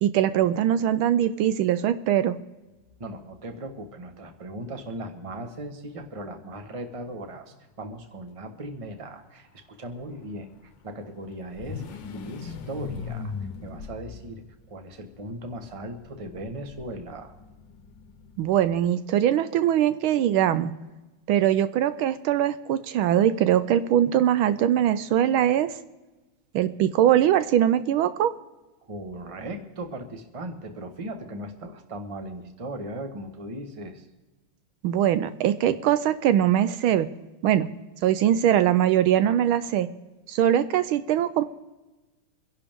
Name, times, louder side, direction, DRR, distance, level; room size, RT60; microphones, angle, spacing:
voice 1, 0.0-2.4 18.4-20.7 21.3-25.7 26.5-28.3 34.8-37.1 37.4-37.7 38.0-39.9 40.3-41.4, right 11 dB, 75° right, 13 dB, 1.4 m, -22 dB
sound 1, 2.9-3.0 3.3-3.4 5.0-7.6 9.9-18.9, left 5 dB, 65° left, 1.5 m, -41 dB
voice 2, 3.0-13.3 13.6-14.4 14.7-17.3 28.9-34.1, right 1 dB, 20° right, 6 dB, 1.0 m, -38 dB
25.5 x 11.0 x 3.6 m, 1.1 s
omnidirectional pair, 2.3 m